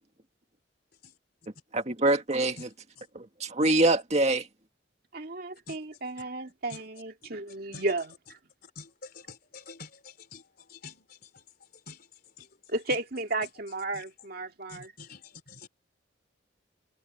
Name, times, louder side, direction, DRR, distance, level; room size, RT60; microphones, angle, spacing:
voice 1, 1.7-2.6 3.1-4.4, right 2 dB, 35° right, 1.9 m, -24 dB
voice 2, 5.1-8.0 12.7-14.8, right 2 dB, 50° right, 2.2 m, -33 dB
voice 3, 5.7-6.2 6.7-8.3 8.6-13.0 13.4-14.3 14.7-15.7, left 4 dB, 50° left, 4.1 m, -49 dB
head